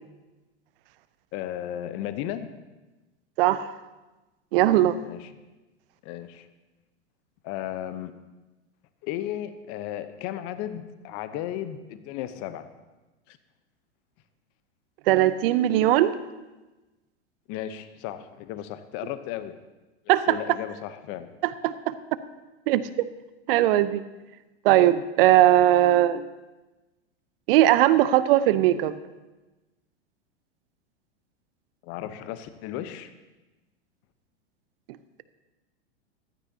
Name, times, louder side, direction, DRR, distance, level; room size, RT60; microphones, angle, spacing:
voice 1, 1.3-2.5 5.0-5.3 6.0-6.5 7.4-8.1 9.0-12.7 13.3-13.4 17.5-19.5 20.3-21.3 31.8-33.1, left 11 dB, 45° left, 11 dB, 0.9 m, -34 dB
voice 2, 3.4-3.7 4.5-5.0 15.1-16.1 20.1-20.4 21.4-21.9 22.7-22.9 23.5-24.0 24.6-26.3 27.5-29.0, right 13 dB, 55° right, 14 dB, 0.7 m, -19 dB
15.0 x 13.0 x 2.8 m, 1.1 s
hypercardioid pair, 100°, 35 cm